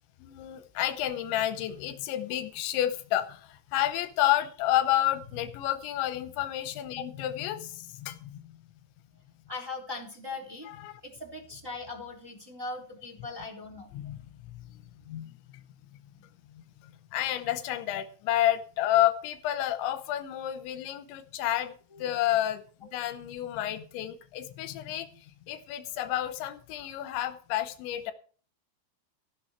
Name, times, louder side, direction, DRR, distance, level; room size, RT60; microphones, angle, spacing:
voice 1, 0.2-8.4 10.7-11.0 13.9-14.2 14.7-15.3 16.5-28.1, left 13 dB, 80° left, 11 dB, 3.1 m, -30 dB
voice 2, 9.5-10.7 11.0-13.9 16.2-16.3 21.9-22.1, left 3 dB, 5° right, -3 dB, 2.8 m, -40 dB
14.5 x 11.0 x 4.4 m, 0.41 s
omnidirectional pair, 5.5 m